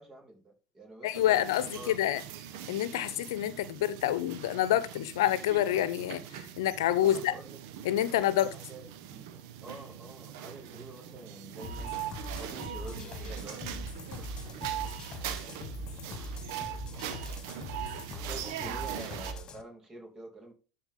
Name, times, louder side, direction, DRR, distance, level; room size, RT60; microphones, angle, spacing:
voice 1, 0.0-1.5 1.7-2.0 7.0-7.6 8.0-12.0 12.4-17.4 18.1-20.5, right 2 dB, 30° right, 4.0 m, -49 dB
voice 2, 1.0-2.2 2.7-7.3 7.8-8.5, left 12 dB, 80° left, 0.8 m, -28 dB
sound 1, 1.1-19.3, right 10 dB, 70° right, 1.2 m, -41 dB
sound 2, 11.6-19.6, left 1 dB, 35° left, 1.7 m, -41 dB
12.5 x 4.5 x 3.8 m
hypercardioid pair, 85°, 2 cm